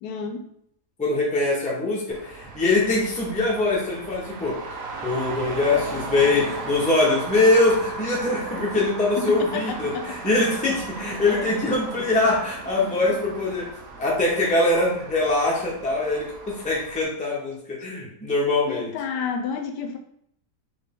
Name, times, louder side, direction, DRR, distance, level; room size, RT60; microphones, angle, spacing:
voice 1, 0.0-0.5 9.2-10.2 11.0-11.5 12.0-12.2 18.7-20.0, left 6 dB, 80° left, 5 dB, 1.1 m, -31 dB
voice 2, 1.0-4.6 5.0-13.7 14.0-18.9, left 2 dB, 5° left, -3 dB, 0.6 m, -23 dB
Traffic noise roadway noise, 2.1-17.0, right 3 dB, 65° right, 0.9 m, -37 dB
4.2 x 2.8 x 3.6 m, 0.70 s
omnidirectional pair, 1.8 m